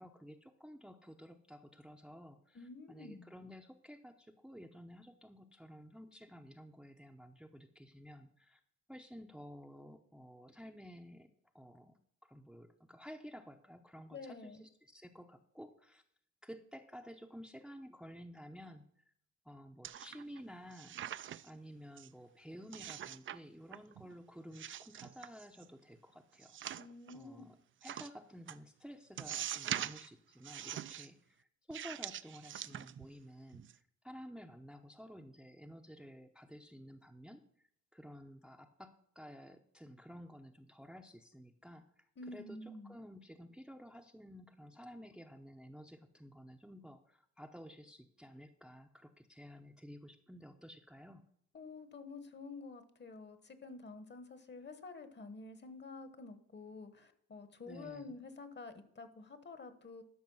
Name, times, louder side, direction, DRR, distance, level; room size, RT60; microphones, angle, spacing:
voice 1, 0.0-8.6 8.9-16.0 16.4-19.1 19.4-21.0 21.4-26.8 27.1-27.6 27.8-37.4 37.9-51.2 57.7-58.2, equal, 5° right, 4 dB, 0.7 m, -53 dB
voice 2, 2.5-3.3 14.1-14.6 26.8-27.5 42.2-43.0 51.5-60.0, left 3 dB, 35° left, 11 dB, 1.2 m, -49 dB
sound 1, 19.8-20.4 20.7-21.6 22.0-22.1 22.7-23.4 23.7-24.2 24.5-25.7 26.4-27.1 27.8-28.1 28.5-28.6 29.2-30.1 30.4-31.1 31.7-33.2 33.5-33.7, right 10 dB, 45° right, 0.4 m, -43 dB
12.0 x 5.4 x 5.5 m, 0.68 s
cardioid pair, 90°, 30 cm